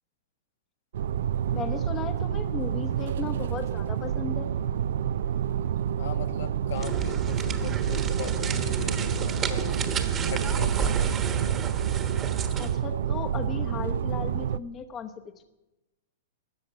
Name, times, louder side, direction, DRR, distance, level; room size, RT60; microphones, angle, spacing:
sound 1, 0.9-14.6, right 9 dB, 75° right, 0.4 m, -28 dB
voice 1, 1.5-4.5 12.6-15.1, left 6 dB, 25° left, 8 dB, 0.9 m, -36 dB
voice 2, 6.0-9.8 10.2-11.3, left 7 dB, 75° left, 7 dB, 1.5 m, -39 dB
sound 2, 6.7-12.8, right 6 dB, 25° right, 1.2 m, -32 dB
13.5 x 7.8 x 9.0 m, 1.0 s
hypercardioid pair, 135°, 0 cm